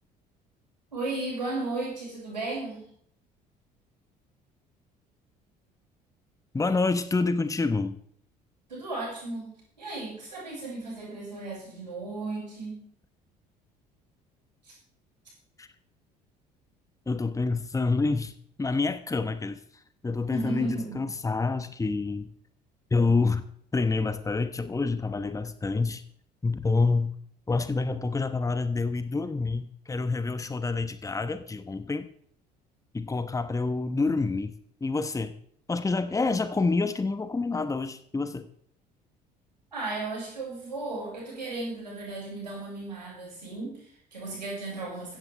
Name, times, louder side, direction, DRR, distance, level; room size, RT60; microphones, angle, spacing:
voice 1, 0.9-2.8 8.7-12.8 14.6-14.7 20.3-21.0 39.7-45.2, right 2 dB, 85° right, -4 dB, 6.4 m, -35 dB
voice 2, 6.5-8.0 15.6-15.7 17.1-18.3 18.6-19.6 20.0-22.3 22.9-23.4 23.7-26.0 26.4-27.1 27.5-32.1 32.9-34.5 34.8-35.3 35.7-38.5, left 3 dB, 15° left, 11 dB, 1.2 m, -27 dB
15.5 x 15.0 x 3.5 m, 0.62 s
figure-of-eight pair, 55°, 21 cm